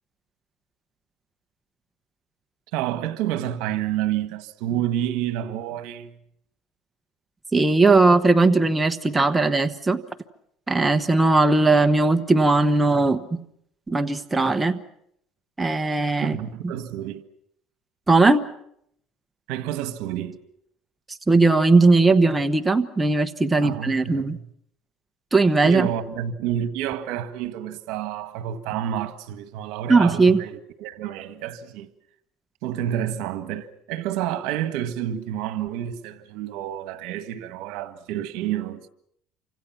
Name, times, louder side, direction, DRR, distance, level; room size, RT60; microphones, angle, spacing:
voice 1, 2.7-6.1 16.2-17.2 19.5-20.4 23.6-24.4 25.6-31.9 32.6-38.9, right 11 dB, 75° right, 1.6 m, -29 dB
voice 2, 7.5-10.0 10.7-13.4 13.9-14.8 15.6-16.4 16.6-16.7 18.1-18.4 21.3-24.4 25.3-25.9 29.9-30.4, right 3 dB, 10° right, 1.1 m, -18 dB
28.5 x 26.0 x 6.0 m
cardioid pair, 130°, 0 cm